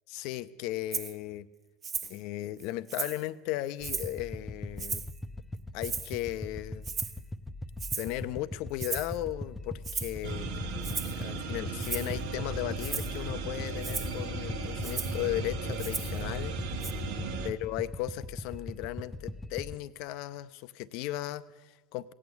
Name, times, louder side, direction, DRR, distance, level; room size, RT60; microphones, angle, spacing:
voice 1, 0.1-1.5 2.0-5.0 5.7-6.8 7.9-10.5 11.0-16.9 17.4-22.1, left 15 dB, 60° left, 14 dB, 0.6 m, -36 dB
Rattle (instrument), 0.9-1.1 1.8-2.2 2.6-3.3 3.8-4.2 4.8-5.2 5.8-6.3 6.8-7.2 7.8-8.2 8.8-9.2 9.8-10.2 10.8-11.2 11.8-12.1 12.8-13.2 13.8-14.1 14.8-15.2 15.8-16.2 16.8-16.9, right 5 dB, 35° right, 1.0 m, -36 dB
sound 1, 3.8-19.8, left 1 dB, 15° left, 0.7 m, -40 dB
sound 2, 10.2-17.5, right 3 dB, 65° right, 1.2 m, -37 dB
16.5 x 8.6 x 7.9 m, 1.2 s
hypercardioid pair, 75°, 0 cm